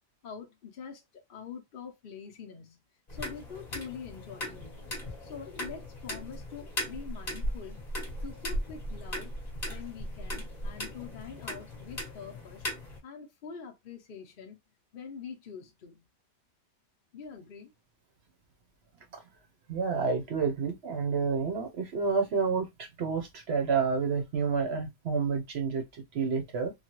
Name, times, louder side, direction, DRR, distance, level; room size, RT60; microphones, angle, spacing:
voice 1, 0.2-2.8 3.1-4.9 5.2-7.8 8.2-9.3 9.7-12.6 13.0-14.6 14.9-16.1 17.1-17.7, left 6 dB, 50° left, 0.7 m, -45 dB
sound 1, 3.1-13.0, equal, 35° left, 0.9 m, -38 dB
voice 2, 19.7-26.7, right 5 dB, 55° right, 0.8 m, -29 dB
3.1 x 2.3 x 2.9 m
omnidirectional pair, 1.5 m